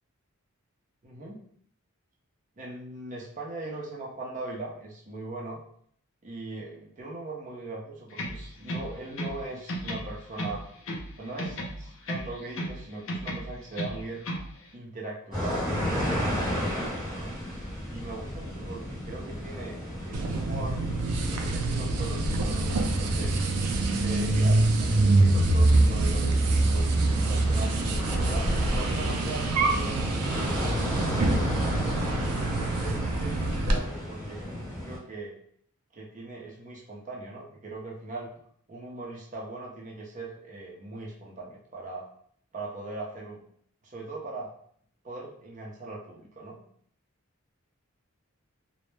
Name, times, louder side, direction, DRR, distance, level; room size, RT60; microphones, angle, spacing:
voice 1, 1.0-1.4 2.6-5.6 6.2-10.6 11.2-14.3 14.7-17.4 17.9-20.8 21.2-23.4 24.0-27.8 28.2-31.7 32.3-35.3 35.9-38.3 38.7-42.1 42.5-43.4 43.8-44.5 45.0-46.6, right 2 dB, 35° right, -3 dB, 0.5 m, -40 dB
sound 1, 8.1-9.4 9.7-11.1 11.4-12.8 13.1-14.5, equal, 60° left, 0.5 m, -34 dB
sound 2, 15.3-35.0, equal, ahead, 0.9 m, -34 dB
sound 3, 20.1-33.8, right 2 dB, 90° right, 0.4 m, -25 dB
2.1 x 2.0 x 3.1 m, 0.63 s
head